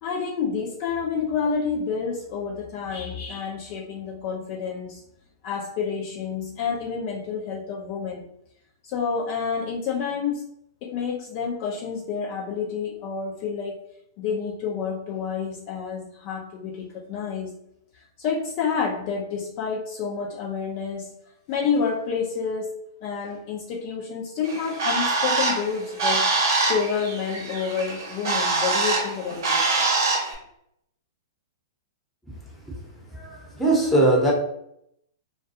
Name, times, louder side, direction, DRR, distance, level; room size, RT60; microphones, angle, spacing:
voice 1, 0.0-5.0 5.4-8.3 8.8-10.4 10.8-13.8 14.2-17.6 18.2-21.2 21.5-26.3 26.6-29.7, left 6 dB, 45° left, -2 dB, 0.5 m, -29 dB
Bird, 24.4-30.3, right 3 dB, 65° right, 0.8 m, -24 dB
voice 2, 33.2-34.3, right 1 dB, 5° left, -3 dB, 0.9 m, -20 dB
2.3 x 2.3 x 2.7 m, 0.75 s
hypercardioid pair, 115°, 2 cm